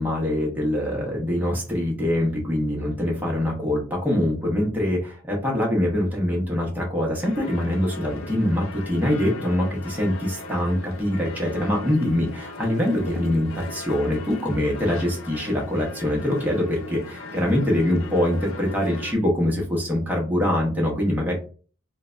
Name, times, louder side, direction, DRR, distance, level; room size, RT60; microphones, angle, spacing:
voice 1, 0.0-21.4, left 1 dB, 10° right, -2 dB, 0.7 m, -24 dB
sound 1, 7.2-19.1, left 2 dB, 80° left, 0.5 m, -38 dB
3.1 x 2.1 x 2.4 m, 0.39 s
head